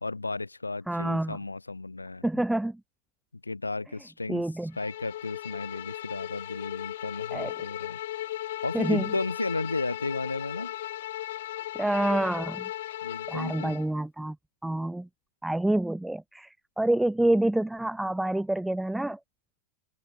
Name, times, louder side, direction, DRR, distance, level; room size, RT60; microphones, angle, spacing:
voice 1, 0.0-2.3 3.4-4.4 4.8-8.0 8.6-10.7 13.0-13.8, left 3 dB, 80° left, 1.2 m, -34 dB
voice 2, 0.9-1.4 2.2-2.8 4.3-4.7 7.3-7.5 8.7-9.1 11.8-12.7 13.3-14.4 14.6-15.1 15.4-19.2, right 1 dB, 5° right, 0.3 m, -27 dB
Bowed string instrument, 4.7-13.9, left 14 dB, 55° left, 0.9 m, -37 dB
figure-of-eight pair, 90°, 0 cm